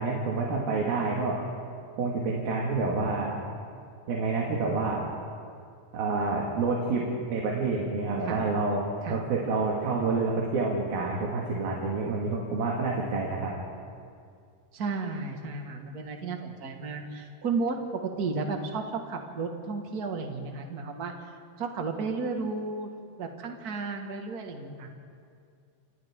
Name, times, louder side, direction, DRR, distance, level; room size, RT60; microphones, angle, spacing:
voice 1, 0.0-1.4 2.0-3.4 4.1-5.0 5.9-7.0 7.3-13.5, right 3 dB, 80° right, -3 dB, 3.9 m, -28 dB
voice 2, 14.7-21.1 21.6-22.9 23.2-24.9, right 4 dB, 40° right, 3 dB, 1.5 m, -33 dB
29.5 x 28.0 x 3.7 m, 2.3 s
omnidirectional pair, 4.1 m